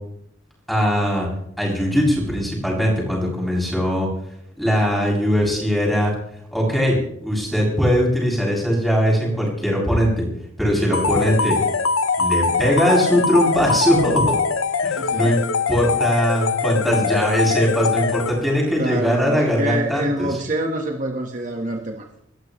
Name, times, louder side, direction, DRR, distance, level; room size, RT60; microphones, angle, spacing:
voice 1, 0.7-1.3 1.6-4.1 4.6-6.1 6.5-10.3 10.6-11.6 12.2-14.3 14.8-15.4 15.7-20.4, equal, ahead, -3 dB, 7.5 m, -20 dB
sound 1, 10.9-18.7, left 4 dB, 85° left, 0.7 m, -22 dB
voice 2, 15.0-15.4 18.8-22.2, right 1 dB, 40° right, 2 dB, 1.4 m, -26 dB
28.5 x 14.0 x 3.2 m, 0.75 s
head